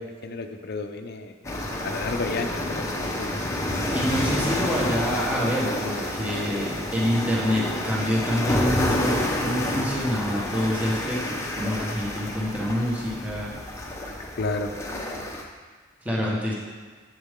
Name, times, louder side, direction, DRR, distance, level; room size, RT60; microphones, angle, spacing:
voice 1, 0.0-3.3 14.4-14.8, left 3 dB, 50° left, 6 dB, 0.6 m, -32 dB
sound 1, 1.4-15.4, left 1 dB, 15° left, 0.8 m, -29 dB
voice 2, 3.9-13.5 16.0-16.5, equal, 5° right, -5 dB, 1.3 m, -26 dB
8.3 x 7.3 x 3.7 m, 1.5 s
head